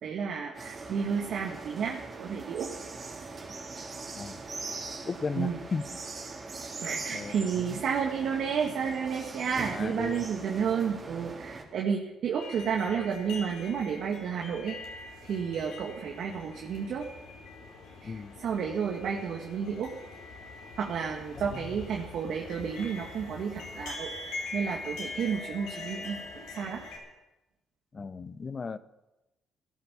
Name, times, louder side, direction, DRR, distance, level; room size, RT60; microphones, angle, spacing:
voice 1, 0.0-2.7 5.4-5.6 6.8-14.8 15.2-17.1 18.0-19.9 20.7-26.8, right 6 dB, 65° right, 1 dB, 1.8 m, -31 dB
sound 1, 0.5-11.6, right 3 dB, 45° right, 3.7 m, -41 dB
voice 2, 5.0-6.0 7.1-7.8 9.7-10.3 18.0-18.4 21.5-21.7 27.9-28.8, left 4 dB, 40° left, 14 dB, 1.0 m, -36 dB
sound 2, 12.3-27.0, left 3 dB, 80° left, 4.4 m, -43 dB
16.5 x 12.0 x 7.0 m, 0.98 s
supercardioid pair, 60°, 0 cm